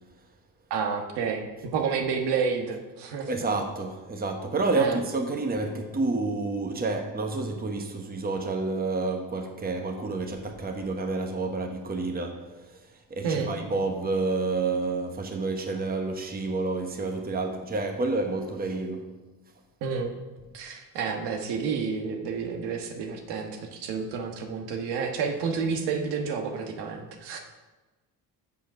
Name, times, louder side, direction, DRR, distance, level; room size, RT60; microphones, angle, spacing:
voice 1, 0.7-3.3 4.7-5.0 13.2-13.5 19.8-20.1 20.5-27.5, right 5 dB, 90° right, 1.4 m, -30 dB
voice 2, 3.3-19.1, right 3 dB, 25° right, 1.1 m, -29 dB
7.4 x 7.0 x 5.7 m
cardioid pair, 95°, 39 cm